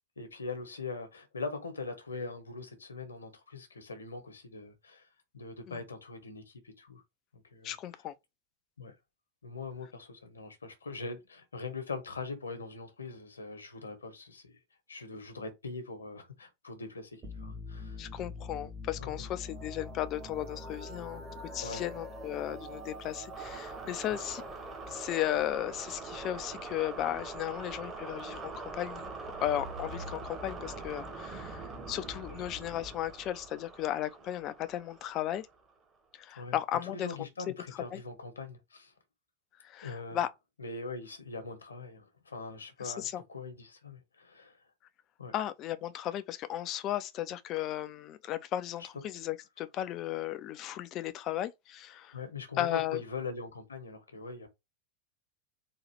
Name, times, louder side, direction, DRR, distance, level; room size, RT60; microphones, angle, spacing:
voice 1, 0.2-5.1 5.3-7.0 7.3-7.7 8.8-8.9 9.4-14.6 14.9-18.0 18.9-19.2 21.6-21.9 36.4-38.9 39.8-40.2 40.6-44.6 45.2-45.3 52.1-54.5, left 3 dB, 75° left, 1.2 m, -42 dB
voice 2, 7.6-8.1 18.0-24.4 24.9-35.5 36.1-37.1 37.9-38.0 39.6-40.3 42.8-43.2 45.3-52.2 52.6-53.0, left 12 dB, 35° left, 0.6 m, -35 dB
sound 1, 17.2-35.7, right 1 dB, 20° right, 1.4 m, -43 dB
4.1 x 2.8 x 4.3 m
figure-of-eight pair, 90°, 0 cm